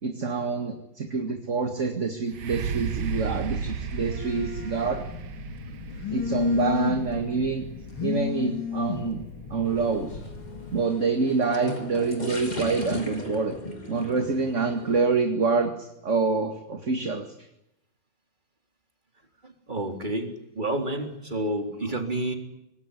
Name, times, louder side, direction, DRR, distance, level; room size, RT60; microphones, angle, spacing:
voice 1, 0.0-5.0 6.1-7.7 8.0-10.2 10.7-13.6 13.9-17.3, right 4 dB, 40° right, 6 dB, 2.3 m, -26 dB
sound 1, 2.3-10.0 10.7-10.8, right 7 dB, 85° right, 2.0 m, -35 dB
Telephone, 2.7-10.8, left 6 dB, 90° left, 3.9 m, -34 dB
sound 2, 9.6-15.0, left 1 dB, 20° left, 3.9 m, -38 dB
voice 2, 19.4-22.4, right 1 dB, 20° right, 5 dB, 3.9 m, -30 dB
25.0 x 20.5 x 10.0 m, 0.86 s
omnidirectional pair, 2.2 m